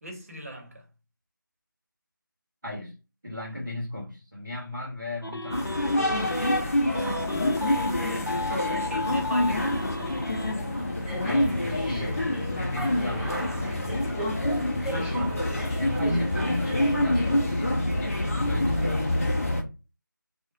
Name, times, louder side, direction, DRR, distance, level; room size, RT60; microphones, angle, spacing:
voice 1, 0.0-0.9 6.6-10.2 14.9-15.5, equal, 45° right, 0.8 m, -39 dB
voice 2, 2.6-3.0 3.2-6.1 11.2-14.0 15.7-19.1, left 1 dB, 5° right, 0.5 m, -36 dB
sound 1, 5.2-6.6 6.9-10.6, left 2 dB, 80° left, 0.7 m, -34 dB
sound 2, 5.5-19.6, left 1 dB, 40° left, 0.6 m, -27 dB
sound 3, 8.6-17.5, right 1 dB, 20° left, 1.0 m, -39 dB
3.1 x 2.1 x 2.9 m
figure-of-eight pair, 165°, 11 cm